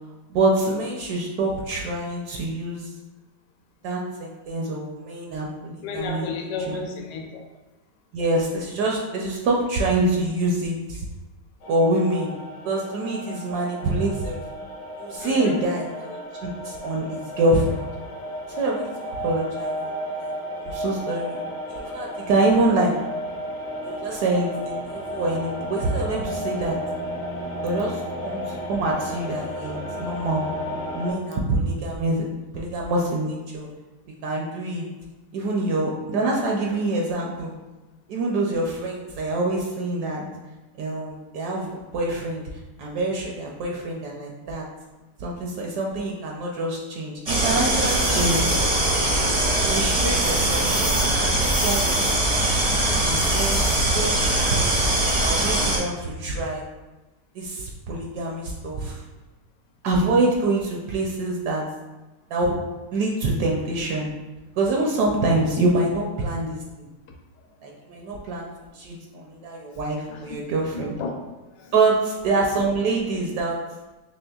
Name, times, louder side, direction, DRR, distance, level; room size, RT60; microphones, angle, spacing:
voice 1, 0.3-2.9 3.8-6.3 6.7-6.8 8.1-11.1 11.7-12.3 12.6-14.4 15.0-17.8 18.5-20.3 20.6-21.4 21.7-22.9 23.8-26.8 27.6-30.4 30.9-32.3 32.5-33.7 34.2-34.9 35.3-37.5 38.1-40.2 40.8-42.4 42.8-44.6 45.2-48.5 49.5-50.9 51.2-52.0 52.9-53.6 53.9-56.6 57.3-59.0 59.8-61.6 62.3-62.6 62.9-64.1 64.6-66.9 67.6-68.5 68.7-70.9 71.7-73.6, right 2 dB, 75° right, -1 dB, 1.0 m, -25 dB
voice 2, 5.8-7.4 15.2-15.6 70.1-70.3 70.7-71.8, left 4 dB, 80° left, 2 dB, 1.2 m, -33 dB
sound 1, 11.6-31.1, equal, 55° left, 0.9 m, -33 dB
sound 2, 47.3-55.8, right 1 dB, 50° right, 0.4 m, -21 dB
4.3 x 3.1 x 2.3 m, 1.1 s
omnidirectional pair, 1.9 m